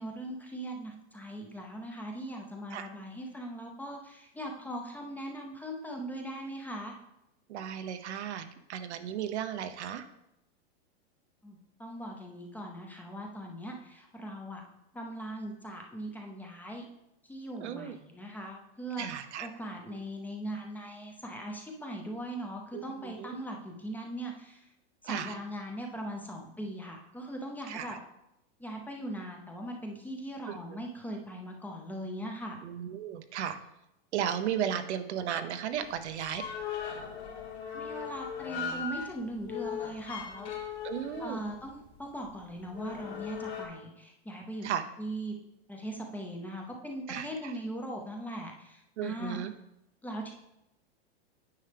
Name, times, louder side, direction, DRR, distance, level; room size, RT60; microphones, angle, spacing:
voice 1, 0.0-6.9 11.4-14.6 14.9-16.9 17.2-24.7 25.0-28.0 28.6-32.6 37.7-40.5 41.2-44.7 45.0-45.3 45.7-49.4 50.0-50.3, right 1 dB, 5° left, 1 dB, 0.6 m, -40 dB
voice 2, 7.5-10.0 17.6-17.9 19.0-19.5 22.7-23.3 25.0-25.3 27.7-28.0 30.5-30.6 32.6-33.6 34.1-36.4 40.8-41.4 44.6-44.8 47.1-47.5 49.0-49.5, right 9 dB, 80° right, 9 dB, 0.8 m, -35 dB
sound 1, 35.7-43.7, left 7 dB, 75° left, 2.0 m, -39 dB
9.4 x 5.5 x 3.4 m, 0.86 s
supercardioid pair, 145°, 33 cm